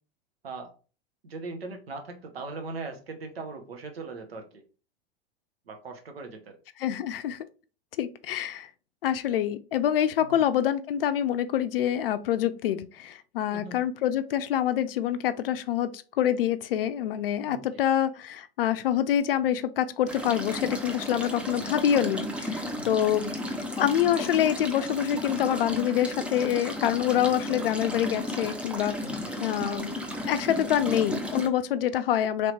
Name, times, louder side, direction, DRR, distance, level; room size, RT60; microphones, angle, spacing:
voice 1, 0.4-0.7 1.2-4.6 5.7-6.6 10.2-10.4 13.5-13.8 17.4-17.6 22.8-22.9 23.4-23.6 29.0-29.4, right 3 dB, 80° right, 0.8 m, -40 dB
voice 2, 6.8-7.4 8.0-8.7 9.0-15.9 16.1-23.3 23.8-28.9 29.4-32.5, left 10 dB, 70° left, 0.5 m, -26 dB
sound 1, 20.1-31.5, left 1 dB, 5° right, 0.3 m, -34 dB
3.2 x 2.8 x 2.9 m
figure-of-eight pair, 85°, 30 cm